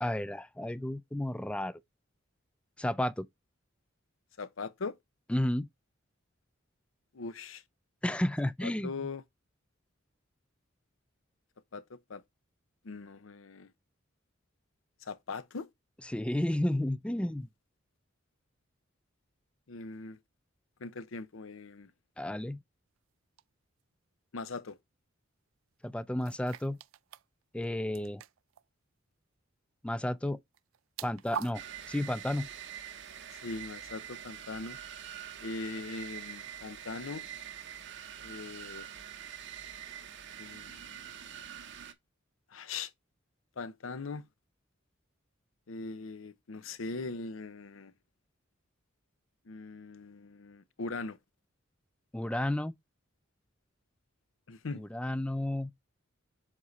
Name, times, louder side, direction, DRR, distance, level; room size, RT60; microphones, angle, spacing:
voice 1, 0.0-1.8 2.8-3.3 5.3-5.7 8.0-9.1 16.1-17.5 22.2-22.6 25.8-26.8 27.5-28.2 29.8-30.4 31.0-31.6 31.9-32.5 52.1-52.7 54.7-55.7, left 1 dB, 5° left, 0.3 m, -32 dB
voice 2, 4.4-5.0 7.1-7.6 8.6-9.2 11.7-12.2 12.8-13.7 15.0-15.7 19.7-20.2 20.8-21.9 24.3-24.8 33.4-34.8 35.4-37.3 38.2-38.9 40.4-41.1 42.5-42.9 43.6-44.3 45.7-47.9 49.5-51.2 54.5-54.9, left 3 dB, 80° left, 0.7 m, -40 dB
sound 1, 23.4-23.5 26.2-27.2 27.5-27.7 27.9-28.6 30.5-31.5, right 8 dB, 80° right, 0.4 m, -42 dB
sound 2, 31.5-41.9, right 10 dB, 60° right, 0.8 m, -45 dB
7.4 x 4.0 x 3.1 m
head